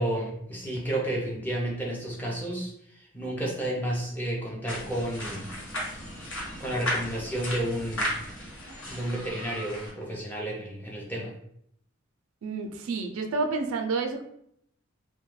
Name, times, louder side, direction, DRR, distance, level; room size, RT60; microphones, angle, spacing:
voice 1, 0.0-5.5 6.6-8.1 8.9-11.3, right 1 dB, 10° left, -3 dB, 0.5 m, -31 dB
sound 1, 4.7-9.9, left 1 dB, 70° left, 0.9 m, -35 dB
voice 2, 12.4-14.2, right 3 dB, 85° right, 4 dB, 0.4 m, -29 dB
2.2 x 2.1 x 3.1 m, 0.71 s
head